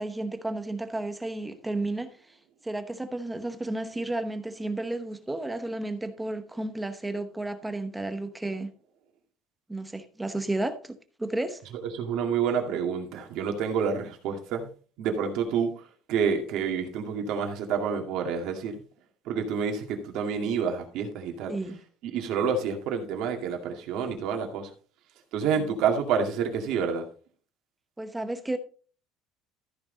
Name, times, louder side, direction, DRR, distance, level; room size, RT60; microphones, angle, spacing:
voice 1, 0.0-2.2 2.6-8.7 9.7-10.9 11.2-11.6 21.5-21.8 28.0-28.6, right 2 dB, 5° right, 0.9 m, -32 dB
voice 2, 11.9-14.7 15.0-18.8 19.3-21.5 22.0-24.7 25.3-27.0, right 6 dB, 55° right, 2.2 m, -28 dB
14.0 x 6.1 x 3.9 m
cardioid pair, 175°, 0 cm